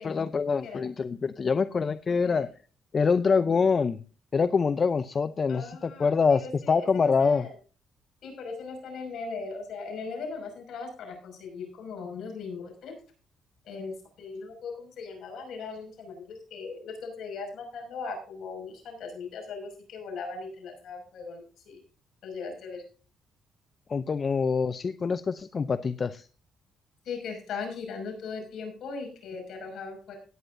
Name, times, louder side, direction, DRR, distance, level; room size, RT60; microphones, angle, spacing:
voice 1, 0.0-2.5 2.9-4.0 4.3-7.5 23.9-26.3, left 5 dB, 40° left, 13 dB, 0.5 m, -25 dB
voice 2, 2.1-2.5 5.5-7.5 8.2-13.0 13.7-21.8 22.2-22.8 27.1-30.2, left 4 dB, 70° left, 2 dB, 5.6 m, -39 dB
17.0 x 9.8 x 2.6 m, 0.37 s
cardioid pair, 90°, 0 cm